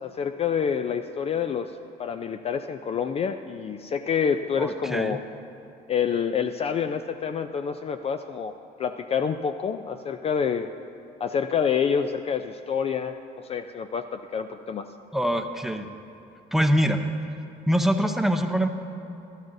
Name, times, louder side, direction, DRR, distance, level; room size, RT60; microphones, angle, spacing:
voice 1, 0.0-1.7 2.0-5.2 5.9-8.5 8.8-10.7 11.2-14.9, left 7 dB, 35° left, 9 dB, 0.4 m, -27 dB
voice 2, 4.6-5.2 15.1-15.9 16.5-17.0 17.7-18.7, equal, ahead, 6 dB, 0.7 m, -23 dB
15.5 x 12.0 x 2.7 m, 2.8 s
cardioid pair, 110°, 17 cm